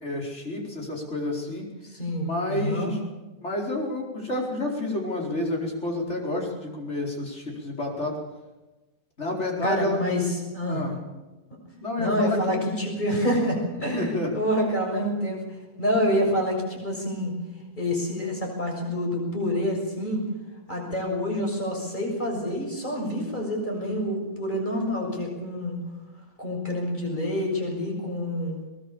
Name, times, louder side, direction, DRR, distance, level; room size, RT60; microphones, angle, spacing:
voice 1, 0.0-1.6 2.2-3.0 3.4-8.1 9.2-10.0 10.7-11.0 11.7-12.7 14.0-14.3, left 2 dB, 45° left, -1 dB, 5.0 m, -29 dB
voice 2, 1.9-2.9 9.6-10.8 12.0-15.4 15.8-17.3 17.8-20.2 20.7-25.8 26.4-28.6, equal, 30° left, 0 dB, 6.9 m, -27 dB
22.5 x 20.0 x 7.2 m, 1.1 s
omnidirectional pair, 1.7 m